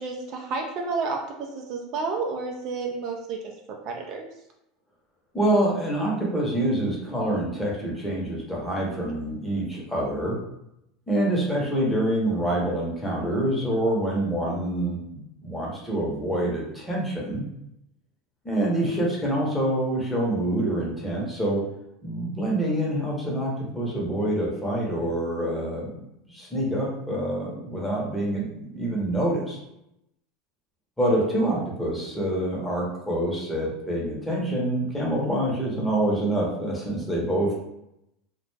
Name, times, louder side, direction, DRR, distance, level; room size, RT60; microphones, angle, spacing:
voice 1, 0.0-3.4 3.9-4.3, right 4 dB, 50° right, 1 dB, 0.4 m, -30 dB
voice 2, 5.3-10.4 11.1-17.4 18.4-21.6 22.0-26.0 26.3-29.6 31.0-37.5, right 1 dB, 5° left, -4 dB, 0.8 m, -26 dB
2.4 x 2.2 x 3.2 m, 0.83 s
supercardioid pair, 135°, 0 cm